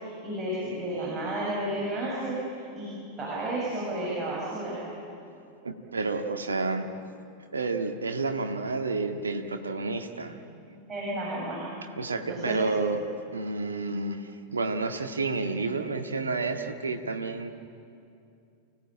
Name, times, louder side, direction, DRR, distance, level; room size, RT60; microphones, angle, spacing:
voice 1, 0.0-2.4 2.7-2.9 3.2-4.8 10.9-11.6 12.3-12.6, right 1 dB, 20° right, -7 dB, 7.6 m, -32 dB
voice 2, 5.6-6.9 7.5-10.4 10.7-10.8 12.0-13.0 13.3-17.5, right 3 dB, 75° right, 5 dB, 1.7 m, -30 dB
29.0 x 17.5 x 9.0 m, 2.5 s
figure-of-eight pair, 90°, 0 cm